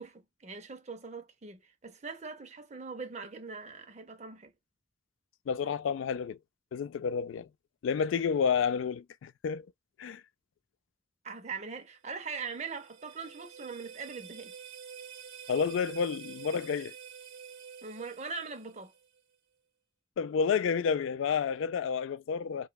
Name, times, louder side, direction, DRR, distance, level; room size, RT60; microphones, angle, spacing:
voice 1, 0.0-4.5 11.2-14.5 17.8-18.9, right 4 dB, 35° right, 0.5 m, -41 dB
voice 2, 5.5-6.4 6.7-7.5 7.8-9.7 10.0-10.2 15.5-16.9 20.2-22.7, left 6 dB, 90° left, 0.3 m, -30 dB
sound 1, 12.1-19.2, right 7 dB, 85° right, 0.7 m, -48 dB
3.0 x 2.2 x 2.2 m
head